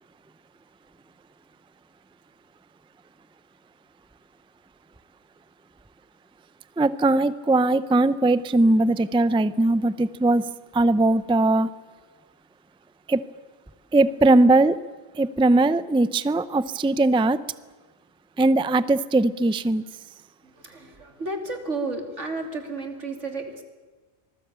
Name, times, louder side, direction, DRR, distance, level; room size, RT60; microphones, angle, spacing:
voice 1, 6.8-11.7 13.1-13.2 13.9-14.8 15.1-17.4 18.4-19.8, right 2 dB, 5° right, 15 dB, 0.4 m, -20 dB
voice 2, 20.4-23.6, right 3 dB, 85° right, 5 dB, 3.3 m, -32 dB
25.5 x 19.5 x 8.8 m, 1.3 s
omnidirectional pair, 1.2 m